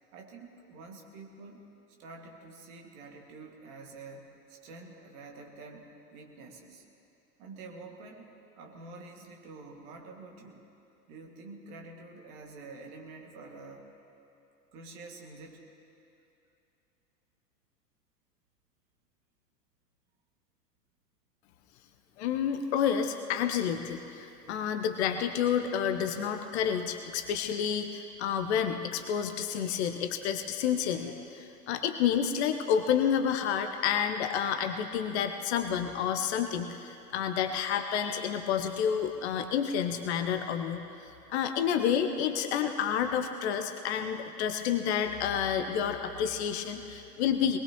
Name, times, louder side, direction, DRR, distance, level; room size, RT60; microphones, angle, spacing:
voice 1, 0.1-1.6 2.0-6.8 7.4-8.3 8.6-10.6 11.1-13.9 14.7-15.7, right 3 dB, 40° right, 1 dB, 2.2 m, -48 dB
voice 2, 22.2-40.9 41.3-47.6, left 8 dB, 45° left, 7 dB, 0.9 m, -29 dB
22.0 x 20.0 x 3.1 m, 2.7 s
figure-of-eight pair, 95°, 48 cm